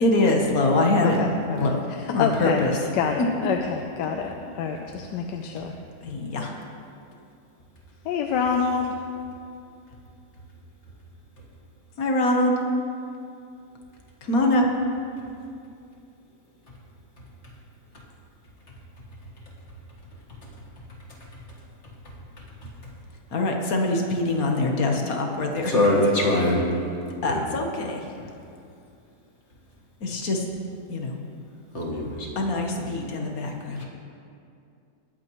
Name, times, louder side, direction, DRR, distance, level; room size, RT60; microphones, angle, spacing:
voice 1, 0.0-1.2 1.6-1.8 2.1-2.8 6.0-6.5 12.0-12.5 14.3-14.7 23.3-25.7 27.2-28.0 30.0-30.4 30.9-31.1 32.4-33.8, left 2 dB, 60° left, 2 dB, 1.5 m, -23 dB
voice 2, 1.0-1.7 2.0-2.6 2.9-5.7 8.0-8.9, left 6 dB, 85° left, 3 dB, 1.3 m, -27 dB
voice 3, 25.7-26.7 27.3-27.4 31.7-32.3 33.8-33.9, left 1 dB, 45° left, -2 dB, 1.8 m, -22 dB
19.5 x 8.7 x 3.1 m, 2.5 s
omnidirectional pair, 1.8 m